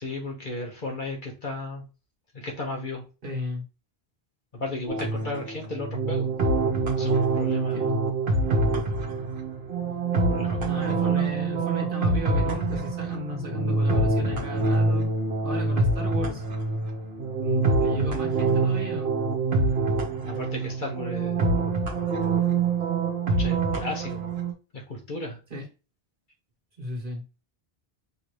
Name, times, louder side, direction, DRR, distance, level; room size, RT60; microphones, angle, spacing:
voice 1, 0.0-1.8 2.3-3.0 4.5-6.3 7.0-7.9 10.1-11.3 20.3-21.4 23.3-24.3 24.7-25.4, left 2 dB, 55° left, 1 dB, 1.4 m, -34 dB
voice 2, 3.2-3.6 7.7-8.0 10.6-15.1 15.4-16.4 17.4-19.1 25.5-25.6 26.8-27.2, left 1 dB, 55° right, 0 dB, 1.6 m, -34 dB
sound 1, 4.9-24.5, right 3 dB, 75° right, 1.2 m, -25 dB
5.7 x 2.8 x 3.1 m, 0.32 s
omnidirectional pair, 1.0 m